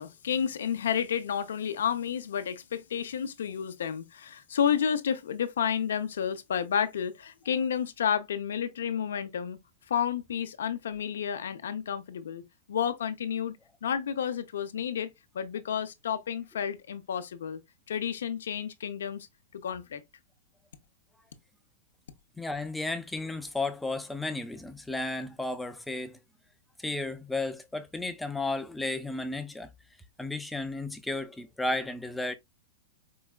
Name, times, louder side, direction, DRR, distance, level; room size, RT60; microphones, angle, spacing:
voice 1, 0.0-9.6 9.9-17.6 17.9-19.3 19.5-20.0, left 8 dB, 90° left, 0.6 m, -31 dB
voice 2, 22.4-26.2 26.8-29.7 30.2-32.4, left 2 dB, 5° left, 0.4 m, -33 dB
4.6 x 2.3 x 2.2 m
supercardioid pair, 160°, 0 cm